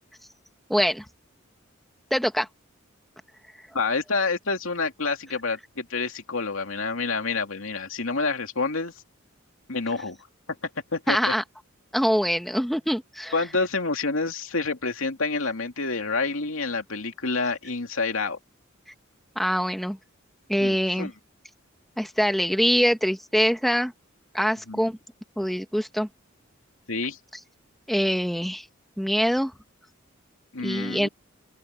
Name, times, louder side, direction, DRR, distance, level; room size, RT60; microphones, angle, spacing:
voice 1, 0.7-1.0 2.1-2.5 11.1-11.4 11.9-13.3 19.3-20.0 20.5-21.1 22.0-23.9 24.3-25.0 25.4-26.1 27.9-28.6 29.0-29.5 30.6-31.1, equal, ahead, 1.5 m, -24 dB
voice 2, 3.7-8.9 9.7-10.2 10.9-11.3 13.3-18.4 20.6-21.1 24.7-24.8 26.9-27.2 30.5-31.1, left 3 dB, 75° left, 2.6 m, -28 dB
open air
head